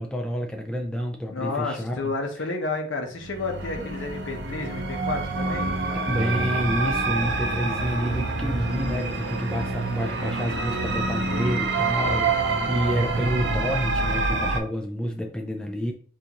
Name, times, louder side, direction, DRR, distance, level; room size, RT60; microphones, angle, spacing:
voice 1, 0.0-2.1 6.1-15.9, equal, 5° left, 1 dB, 0.3 m, -29 dB
voice 2, 1.3-5.8, left 3 dB, 80° left, 4 dB, 0.7 m, -31 dB
sound 1, 3.2-14.6, right 3 dB, 60° right, 0.5 m, -27 dB
3.7 x 2.5 x 2.8 m, 0.44 s
head